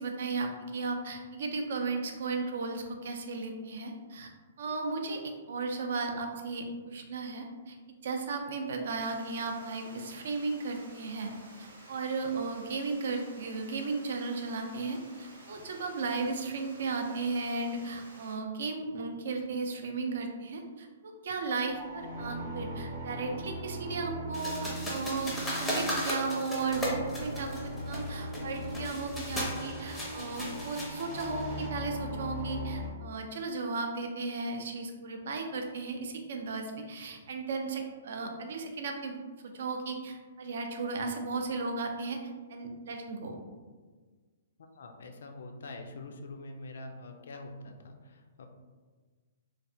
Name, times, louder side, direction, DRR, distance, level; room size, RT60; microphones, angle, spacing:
voice 1, 0.0-4.3 4.6-11.3 11.6-39.2 39.4-42.2 42.5-43.4, right 4 dB, 60° right, 4 dB, 0.4 m, -35 dB
Water, 9.0-18.4, right 1 dB, 90° right, 0.9 m, -53 dB
sound 1, 21.7-32.9, equal, 40° right, 0.8 m, -39 dB
sound 2, 24.3-31.7, equal, 5° left, 0.5 m, -36 dB
voice 2, 44.6-48.5, left 2 dB, 70° left, 4 dB, 0.4 m, -45 dB
3.2 x 2.1 x 2.6 m, 1.4 s
hypercardioid pair, 165°, 0 cm